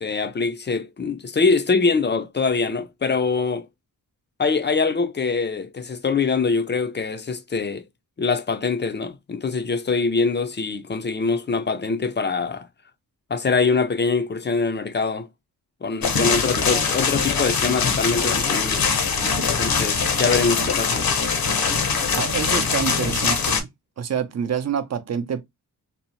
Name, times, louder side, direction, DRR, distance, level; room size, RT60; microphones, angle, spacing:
voice 1, 0.0-3.7 4.4-7.8 8.2-12.7 13.3-15.3 15.8-18.9 19.6-21.1, left 4 dB, 30° left, 0.4 m, -23 dB
sound 1, 16.0-23.6, left 5 dB, 70° left, 0.7 m, -22 dB
voice 2, 22.1-23.7 24.0-25.4, right 7 dB, 45° right, 0.5 m, -27 dB
2.7 x 2.0 x 2.8 m
wide cardioid pair, 80°, 37 cm